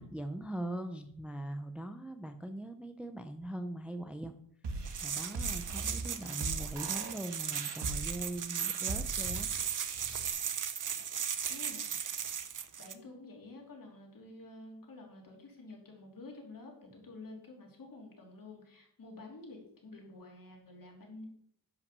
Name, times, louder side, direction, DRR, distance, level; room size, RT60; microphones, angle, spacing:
voice 1, 0.0-4.3 5.0-9.5, right 1 dB, 5° right, 8 dB, 0.5 m, -41 dB
sound 1, 4.6-10.3, right 3 dB, 75° right, 1.5 m, -41 dB
sound 2, 4.9-12.9, right 8 dB, 45° right, 0.7 m, -36 dB
voice 2, 11.5-12.0 12.8-21.2, left 2 dB, 50° left, 0 dB, 3.1 m, -50 dB
10.5 x 5.7 x 6.7 m, 0.68 s
wide cardioid pair, 150°, 42 cm